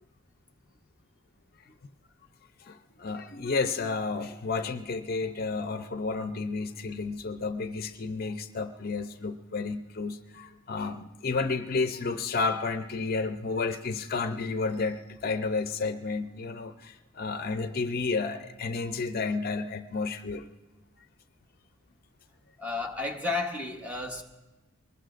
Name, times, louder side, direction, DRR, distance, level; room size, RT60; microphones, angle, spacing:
voice 1, 2.6-20.4, left 4 dB, 45° left, 8 dB, 0.6 m, -31 dB
voice 2, 22.6-24.2, left 3 dB, 5° right, 2 dB, 1.1 m, -32 dB
23.5 x 20.0 x 2.5 m, 1.1 s
head